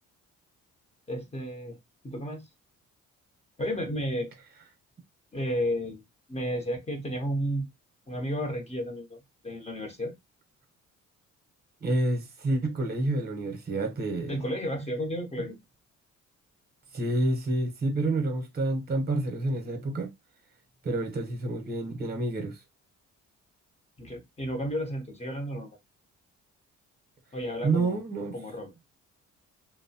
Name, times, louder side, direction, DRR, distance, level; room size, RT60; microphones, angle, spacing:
voice 1, 1.1-1.8 2.0-2.5 3.6-4.3 5.3-6.0 6.3-7.7 8.1-9.2 9.4-10.1 14.3-15.6 24.0-25.8 27.3-28.0 28.3-28.7, equal, 20° left, 0.9 m, -32 dB
voice 2, 11.8-14.4 16.9-20.1 20.8-22.6 27.6-28.3, right 2 dB, 30° right, 0.9 m, -28 dB
2.9 x 2.0 x 2.7 m
cardioid pair, 90°, 30 cm